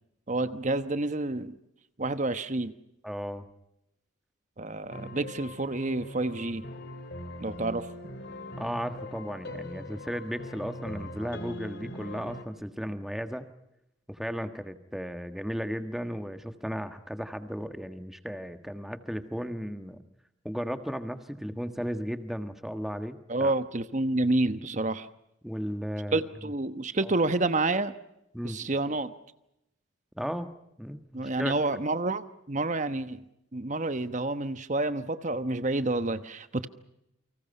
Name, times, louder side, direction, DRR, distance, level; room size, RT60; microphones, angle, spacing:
voice 1, 0.3-1.5 2.0-2.7 4.6-6.6 7.4-7.9 23.3-25.1 26.1-27.9 28.4-29.1 31.1-33.2 33.5-36.7, right 2 dB, 35° right, 11 dB, 1.1 m, -29 dB
voice 2, 3.0-3.5 8.6-13.4 14.1-20.0 20.4-23.5 25.4-26.2 27.0-27.1 28.3-28.6 30.2-30.5 30.8-31.8, equal, ahead, 8 dB, 1.5 m, -35 dB
sound 1, 4.9-12.4, left 1 dB, 55° left, 2.8 m, -41 dB
29.5 x 25.0 x 5.5 m, 0.83 s
head